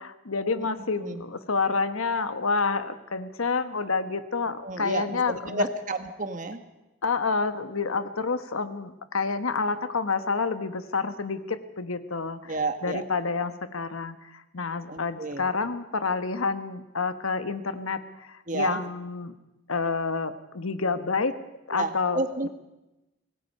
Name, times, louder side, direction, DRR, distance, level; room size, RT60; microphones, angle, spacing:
voice 1, 0.0-5.7 7.0-12.6 12.8-19.3 19.7-21.4 21.7-22.5, left 4 dB, 75° left, 11 dB, 1.2 m, -29 dB
voice 2, 4.6-6.6 12.4-13.0 14.9-15.5 18.5-18.8 21.7-22.5, right 2 dB, 35° right, 8 dB, 1.4 m, -31 dB
25.0 x 19.0 x 5.5 m, 0.99 s
head